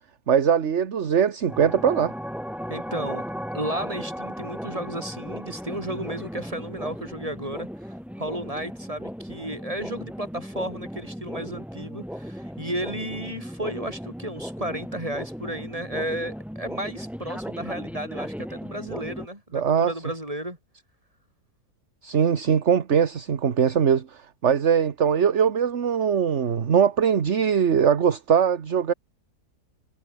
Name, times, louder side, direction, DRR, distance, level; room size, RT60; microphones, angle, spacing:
voice 1, 0.3-2.1 19.5-19.9 22.0-28.9, right 7 dB, 50° right, 1.5 m, -21 dB
sound 1, 1.5-19.3, equal, ahead, 4.5 m, -36 dB
voice 2, 2.7-3.3 3.5-7.7 8.2-20.6, right 1 dB, 20° right, 8.0 m, -33 dB
omnidirectional pair, 1.7 m